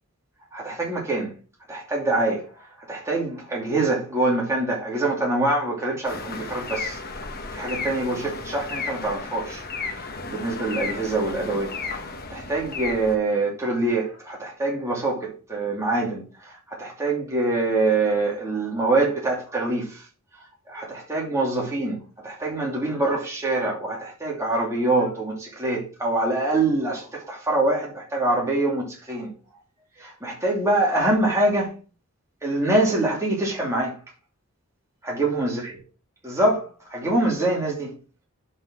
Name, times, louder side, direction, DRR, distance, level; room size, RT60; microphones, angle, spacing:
voice 1, 0.5-1.3 1.7-2.5 2.9-7.0 7.5-9.6 9.9-11.7 12.3-20.0 20.7-29.3 30.0-31.7 32.4-34.0 35.1-35.8 36.2-37.9, right 2 dB, 15° right, 2.7 m, -25 dB
sound 1, 6.0-13.2, left 4 dB, 45° left, 1.2 m, -34 dB
7.6 x 5.4 x 6.2 m
head